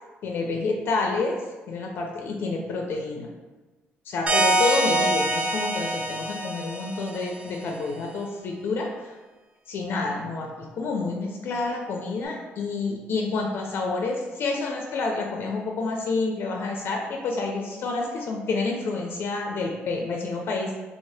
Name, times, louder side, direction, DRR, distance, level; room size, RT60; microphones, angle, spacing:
voice 1, 0.2-1.4 1.7-3.3 4.1-9.1 9.7-20.7, left 3 dB, 60° left, 1 dB, 0.4 m, -28 dB
sound 1, 4.3-7.7, right 1 dB, 30° right, 0.5 m, -25 dB
2.9 x 2.7 x 3.2 m, 1.2 s
cardioid pair, 125°, 4 cm